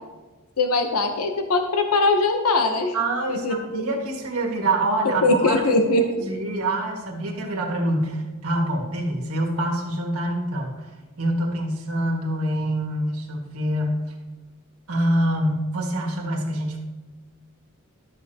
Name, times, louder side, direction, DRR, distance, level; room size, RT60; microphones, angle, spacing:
voice 1, 0.6-2.9 3.3-3.9 5.2-6.0, left 2 dB, 75° left, 5 dB, 0.8 m, -21 dB
voice 2, 2.9-5.6 6.2-10.7 11.2-14.0 14.9-16.8, right 1 dB, 70° right, 0 dB, 1.8 m, -25 dB
12.0 x 7.2 x 2.8 m, 1.3 s
head